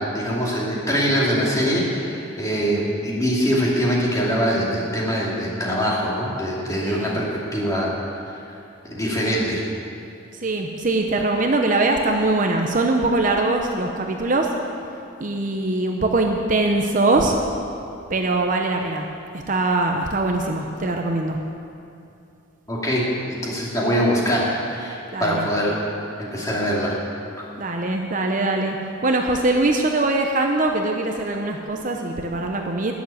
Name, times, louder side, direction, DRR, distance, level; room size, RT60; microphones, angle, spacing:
voice 1, 0.0-7.2 7.5-7.9 8.9-9.6 22.7-25.8 26.2-26.9 27.4-27.5, equal, 15° left, -5 dB, 2.5 m, -23 dB
voice 2, 6.8-7.2 10.4-14.5 15.2-17.3 18.1-19.1 19.5-21.4 25.1-25.5 27.6-28.8 29.0-32.9, right 2 dB, 40° right, 2 dB, 0.8 m, -22 dB
12.5 x 7.2 x 9.6 m, 2.7 s
head